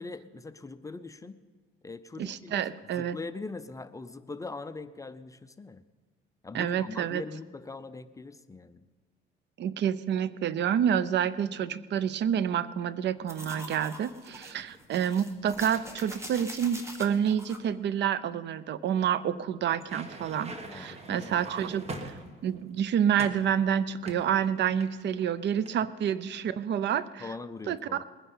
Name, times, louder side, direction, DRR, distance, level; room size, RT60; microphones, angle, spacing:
voice 1, 0.0-1.4 1.8-5.8 6.4-8.8 20.7-22.1 27.2-28.0, left 3 dB, 15° left, 11 dB, 0.6 m, -42 dB
voice 2, 2.2-3.2 6.5-7.2 9.6-22.1 22.4-27.2 27.7-28.0, right 8 dB, 55° right, 17 dB, 0.6 m, -28 dB
sound 1, 13.3-17.6, equal, 15° right, 1.6 m, -44 dB
sound 2, 19.7-22.6 23.2-23.5 24.0-25.2 25.5-25.8, right 2 dB, 30° right, 1.5 m, -42 dB
20.5 x 9.8 x 5.5 m, 1.4 s
cardioid pair, 115°, 21 cm